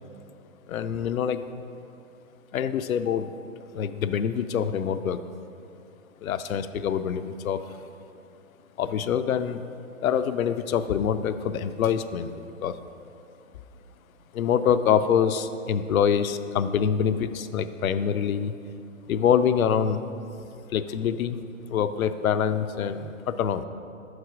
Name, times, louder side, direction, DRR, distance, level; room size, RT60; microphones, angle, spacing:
voice 1, 0.7-1.4 2.5-3.3 3.7-5.2 6.2-7.6 8.8-9.6 10.0-12.8 14.3-18.5 19.1-20.0 20.7-21.4 21.7-23.7, left 8 dB, 80° left, 12 dB, 0.5 m, -25 dB
5.8 x 4.8 x 4.8 m, 2.6 s
hypercardioid pair, 130°, 41 cm